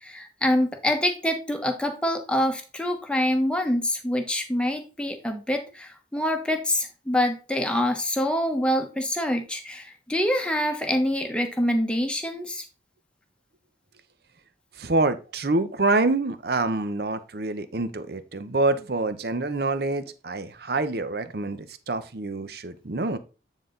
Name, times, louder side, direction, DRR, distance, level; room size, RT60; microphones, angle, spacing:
voice 1, 0.0-12.6, left 1 dB, 5° left, 4 dB, 1.0 m, -25 dB
voice 2, 14.8-23.2, right 2 dB, 60° right, 12 dB, 0.8 m, -26 dB
9.1 x 4.0 x 3.8 m, 0.33 s
head